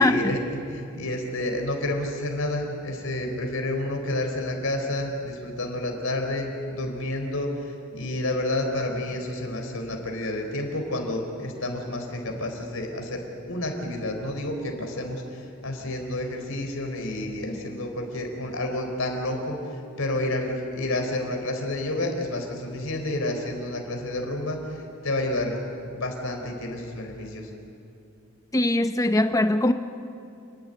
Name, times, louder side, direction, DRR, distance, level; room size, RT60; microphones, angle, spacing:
voice 1, 0.0-25.6 25.9-27.5, left 1 dB, 85° left, 2 dB, 4.1 m, -30 dB
voice 2, 28.5-29.7, left 1 dB, 15° left, 9 dB, 0.7 m, -21 dB
29.0 x 12.0 x 10.0 m, 2.6 s
head